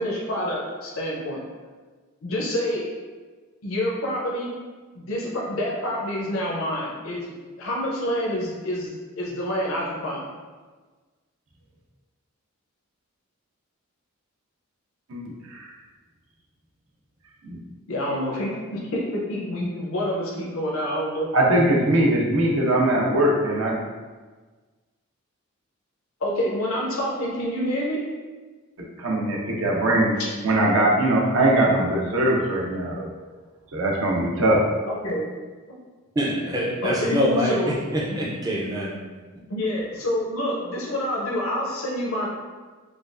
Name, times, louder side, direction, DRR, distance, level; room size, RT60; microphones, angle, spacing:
voice 1, 0.0-1.4 2.2-2.9 3.6-4.5 4.9-10.3 17.9-21.3 26.2-28.0 34.9-35.3 36.8-37.7 38.1-38.2 39.5-42.3, equal, 70° left, -3 dB, 0.6 m, -27 dB
voice 2, 15.1-15.7 17.4-17.6 21.3-23.8 29.0-30.1 30.4-33.1 33.7-34.6, right 1 dB, 70° right, -2 dB, 0.7 m, -21 dB
voice 3, 36.2-37.5 37.9-39.0, equal, 15° right, -4 dB, 0.4 m, -24 dB
4.7 x 2.3 x 2.5 m, 1.4 s
head